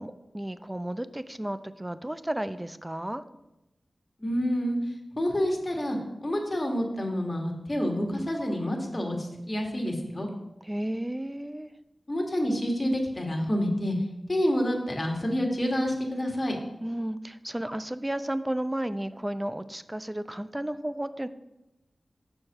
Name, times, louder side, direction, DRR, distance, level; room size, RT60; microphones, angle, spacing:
voice 1, 0.0-3.2 10.6-11.7 16.8-21.3, right 1 dB, 15° right, 13 dB, 0.4 m, -33 dB
voice 2, 4.2-4.8 5.2-10.3 12.1-13.9 14.3-16.5, equal, 35° left, 1 dB, 1.6 m, -28 dB
6.6 x 4.5 x 6.4 m, 0.97 s
wide cardioid pair, 65°, 0 cm